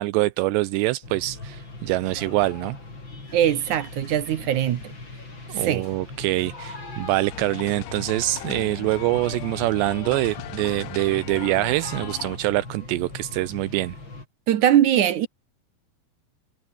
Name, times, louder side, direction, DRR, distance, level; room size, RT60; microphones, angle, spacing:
voice 1, 0.0-2.8 5.5-13.9, right 18 dB, 80° right, 2.9 m, -25 dB
sound 1, 1.0-14.3, left 3 dB, 25° left, 6.6 m, -40 dB
voice 2, 3.3-4.9 5.5-5.8 14.5-15.3, right 11 dB, 65° right, 2.0 m, -21 dB
sound 2, 7.3-12.4, left 14 dB, 70° left, 2.1 m, -38 dB
omnidirectional pair, 5.0 m